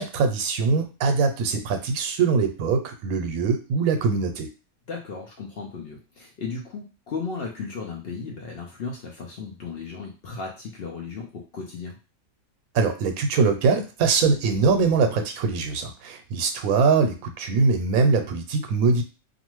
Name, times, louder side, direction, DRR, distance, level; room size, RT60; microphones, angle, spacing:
voice 1, 0.0-4.5 12.7-19.0, right 4 dB, 85° right, 7 dB, 1.0 m, -22 dB
voice 2, 4.9-12.0, left 4 dB, 60° left, 0 dB, 0.6 m, -35 dB
2.5 x 2.4 x 3.0 m, 0.33 s
omnidirectional pair, 1.5 m